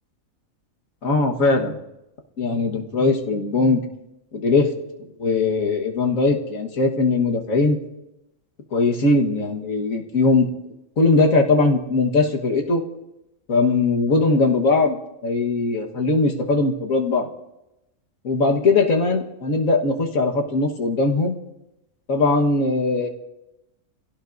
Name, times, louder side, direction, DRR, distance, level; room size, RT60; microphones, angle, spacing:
voice 1, 1.0-1.8 2.4-3.8 4.3-4.7 5.2-7.8 8.7-10.5 11.0-12.8 13.5-15.0 15.2-17.3 18.2-21.3 22.1-23.1, left 3 dB, 75° left, 2 dB, 1.9 m, -20 dB
26.5 x 16.5 x 2.6 m, 0.91 s
omnidirectional pair, 1.4 m